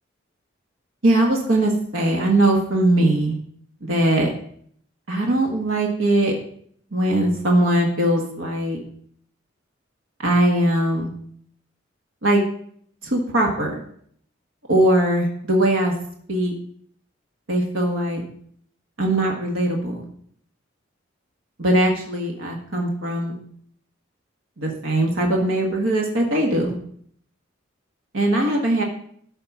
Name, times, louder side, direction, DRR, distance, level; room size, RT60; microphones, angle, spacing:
voice 1, 1.0-3.4 3.8-4.3 5.1-6.3 6.9-8.8 10.2-11.1 12.2-12.4 13.0-13.8 14.7-15.9 16.3-16.5 17.5-18.2 19.0-20.0 21.6-23.3 24.6-26.8 28.1-28.8, right 1 dB, 85° right, 0 dB, 1.6 m, -20 dB
12.5 x 4.3 x 6.0 m, 0.64 s
head